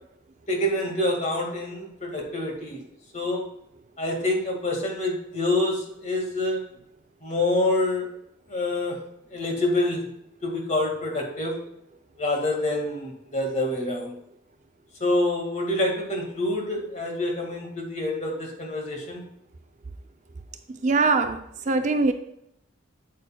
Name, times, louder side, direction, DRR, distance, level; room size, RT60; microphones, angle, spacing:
voice 1, 0.5-2.8 3.1-3.4 4.0-6.6 7.2-8.1 8.5-9.0 9.3-10.0 10.4-11.6 12.2-14.1 15.0-19.2, left 1 dB, 35° left, 1 dB, 1.8 m, -26 dB
voice 2, 20.8-22.1, right 3 dB, 35° right, 8 dB, 0.4 m, -22 dB
8.5 x 8.3 x 2.2 m, 0.78 s
head